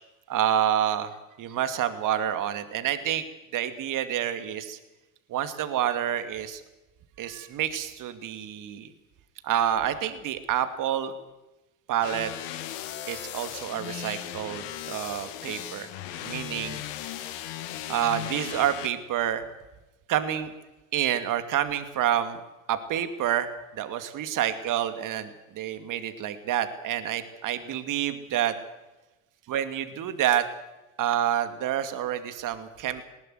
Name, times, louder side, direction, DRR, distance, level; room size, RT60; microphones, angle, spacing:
voice 1, 0.3-1.1 1.4-3.2 3.5-4.8 5.3-6.6 7.2-8.9 9.4-11.1 11.9-12.3 13.1-16.8 17.9-19.4 20.1-20.5 20.9-22.4 22.7-28.5 29.5-30.4 31.0-33.0, right 10 dB, 50° right, 9 dB, 2.5 m, -28 dB
sound 1, 12.0-18.9, left 12 dB, 65° left, 2.1 m, -37 dB
20.0 x 19.0 x 8.0 m, 1.0 s
hypercardioid pair, 75°, 41 cm